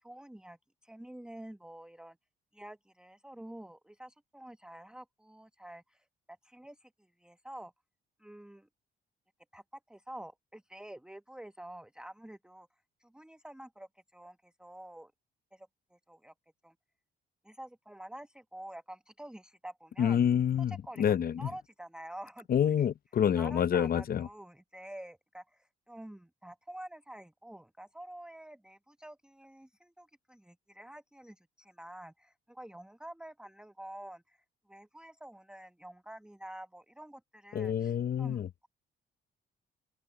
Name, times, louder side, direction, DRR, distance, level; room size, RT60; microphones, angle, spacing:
voice 1, 0.0-2.2 2.5-6.0 6.4-6.9 7.2-7.7 8.2-8.7 9.5-12.7 13.0-15.1 15.5-16.3 16.6-16.7 17.4-20.2 20.7-22.5 22.8-22.9 23.4-34.4 34.7-38.7, right 1 dB, 5° right, 1.0 m, -48 dB
voice 2, 20.0-21.5 22.5-24.3 37.5-38.5, left 9 dB, 50° left, 0.7 m, -28 dB
open air
cardioid pair, 90°, 20 cm